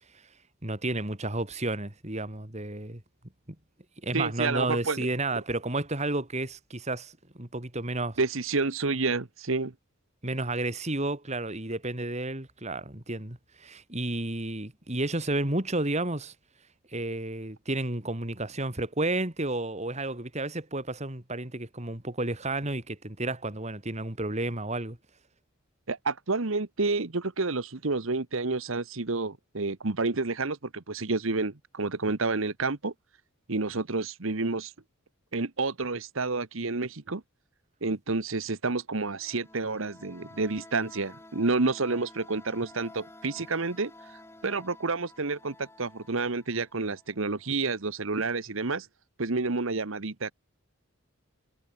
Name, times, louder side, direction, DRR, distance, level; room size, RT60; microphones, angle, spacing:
voice 1, 0.6-3.0 4.0-8.2 10.2-16.3 16.9-25.0, right 2 dB, 30° right, 2.7 m, -31 dB
voice 2, 4.1-5.1 8.2-9.7 25.9-32.9 33.5-34.7 35.3-37.2 37.8-48.9 49.2-50.3, right 3 dB, 65° right, 1.3 m, -29 dB
sound 1, 39.0-47.6, left 2 dB, 10° left, 2.5 m, -52 dB
head